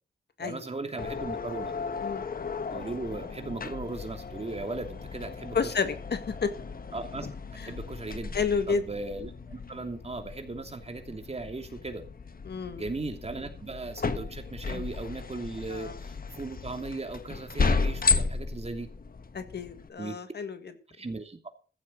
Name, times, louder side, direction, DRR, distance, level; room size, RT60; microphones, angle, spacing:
voice 1, 0.4-1.7 2.7-5.7 6.9-7.3 7.6-12.0 12.8-18.9 20.0-20.2 21.0-21.5, right 3 dB, 40° right, 6 dB, 2.9 m, -37 dB
sound 1, 1.0-19.9, left 4 dB, 60° left, 1.2 m, -34 dB
voice 2, 5.5-6.5 7.6-7.7 8.3-8.8 12.5-12.9 15.7-16.0 19.3-20.7, left 5 dB, 80° left, 9 dB, 1.8 m, -30 dB
15.0 x 7.6 x 6.3 m, 0.38 s
cardioid pair, 70°, 17 cm